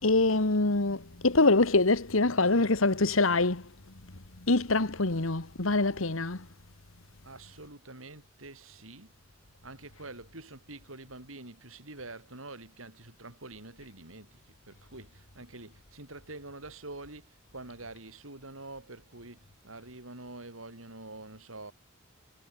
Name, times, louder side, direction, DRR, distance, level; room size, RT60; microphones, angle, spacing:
voice 1, 0.0-6.5, left 3 dB, 80° left, 1.8 m, -25 dB
voice 2, 7.2-9.1 9.6-21.7, right 2 dB, 85° right, 7.2 m, -46 dB
head